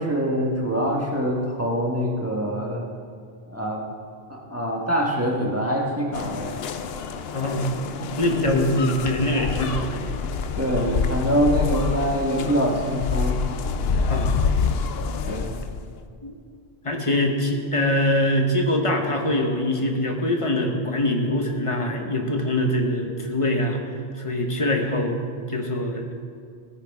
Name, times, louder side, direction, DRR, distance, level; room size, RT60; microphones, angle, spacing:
voice 1, 0.0-2.8 3.5-3.8 4.3-6.6 10.6-13.4 15.3-15.5, equal, 15° right, -2 dB, 1.4 m, -24 dB
sound 1, 6.1-16.0, left 5 dB, 70° left, 0.8 m, -27 dB
voice 2, 7.3-7.7 8.2-10.0 14.1-14.4 16.2-16.3 16.8-23.8 24.2-26.3, left 1 dB, 30° left, 3 dB, 1.2 m, -23 dB
17.0 x 9.6 x 3.6 m, 2.2 s
omnidirectional pair, 1.1 m